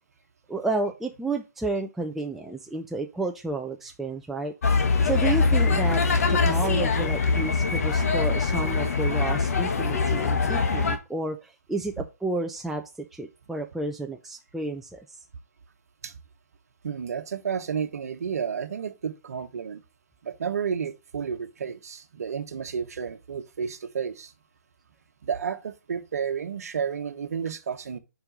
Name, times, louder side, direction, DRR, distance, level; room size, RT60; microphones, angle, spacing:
voice 1, 0.5-4.5 5.0-6.0 6.3-15.2, right 2 dB, ahead, 0.4 m, -31 dB
sound 1, 4.6-11.0, left 4 dB, 60° left, 1.4 m, -23 dB
voice 2, 16.8-19.8 20.2-24.3 25.2-28.0, right 7 dB, 65° right, 1.1 m, -31 dB
5.1 x 4.5 x 5.1 m
hypercardioid pair, 145°, 9 cm